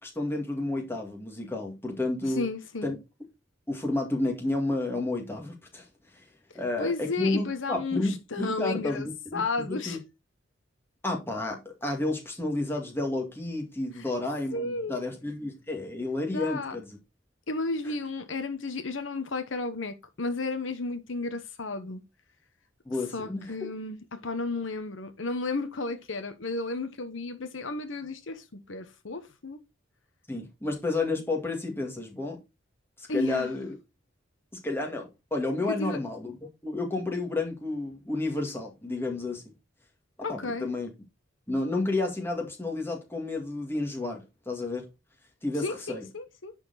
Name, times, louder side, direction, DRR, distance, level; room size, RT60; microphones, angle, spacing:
voice 1, 0.0-2.4 2.8-3.0 3.7-5.9 6.5-10.0 11.0-17.0 22.9-23.5 30.3-32.4 33.1-33.8 34.5-39.4 40.3-40.9 41.5-44.8 45.4-46.0, left 2 dB, 10° left, 2.2 m, -31 dB
voice 2, 2.3-3.0 6.8-10.0 14.5-15.0 16.3-16.8 17.5-22.0 23.1-29.6 33.1-33.5 35.7-36.0 40.2-40.7 45.6-46.5, left 3 dB, 75° left, 1.1 m, -33 dB
10.5 x 4.4 x 4.1 m
head